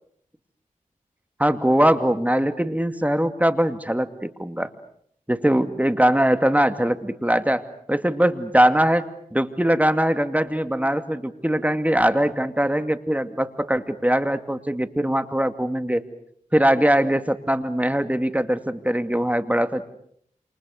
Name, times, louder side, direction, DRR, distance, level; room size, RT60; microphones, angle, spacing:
voice 1, 1.4-4.7 5.3-7.6 7.9-16.0 16.5-19.8, right 1 dB, 10° right, 9 dB, 2.3 m, -21 dB
28.5 x 28.0 x 6.6 m, 0.67 s
cardioid pair, 45°, 14 cm